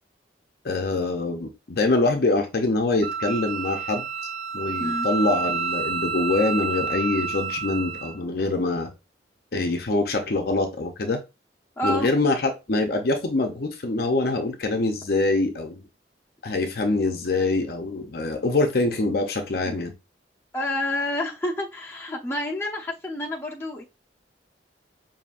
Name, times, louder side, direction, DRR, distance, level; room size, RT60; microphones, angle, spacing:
voice 1, 0.6-4.1 4.5-8.9 9.5-11.2 11.8-15.8 16.4-19.9, left 2 dB, 60° left, 0.6 m, -24 dB
Wind instrument woodwind instrument, 3.0-8.2, right 5 dB, 60° right, 0.4 m, -29 dB
voice 2, 11.8-12.1 19.6-19.8 20.5-23.8, left 1 dB, 15° left, 0.8 m, -29 dB
5.5 x 2.7 x 2.5 m
head